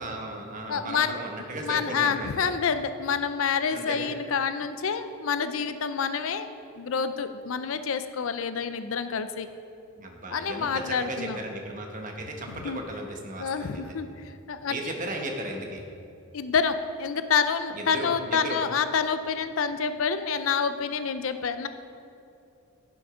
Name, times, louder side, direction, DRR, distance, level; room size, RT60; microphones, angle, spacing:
voice 1, 0.0-2.3 3.7-4.1 10.0-13.8 14.6-15.8 17.7-18.6, right 1 dB, 40° right, 2 dB, 1.1 m, -35 dB
voice 2, 0.7-1.2 1.6-6.5 6.8-9.5 10.3-11.4 12.6-12.8 13.4-14.9 16.3-21.7, left 6 dB, 70° left, 11 dB, 0.5 m, -28 dB
11.5 x 6.1 x 5.0 m, 2.7 s
head